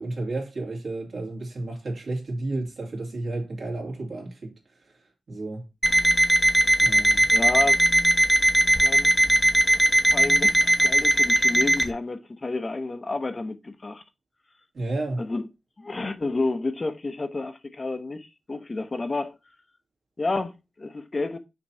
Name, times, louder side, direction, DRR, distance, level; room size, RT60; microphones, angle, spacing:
voice 1, 0.0-5.7 6.8-7.3 14.7-15.2, right 2 dB, 65° right, 2.6 m, -32 dB
Alarm, 5.8-11.9, right 1 dB, 10° right, 0.9 m, -19 dB
voice 2, 7.3-7.8 8.8-9.1 10.1-14.0 15.2-15.4 15.8-19.4 20.2-21.4, left 3 dB, 35° left, 0.8 m, -30 dB
6.1 x 3.0 x 5.5 m
wide cardioid pair, 90°, 0 cm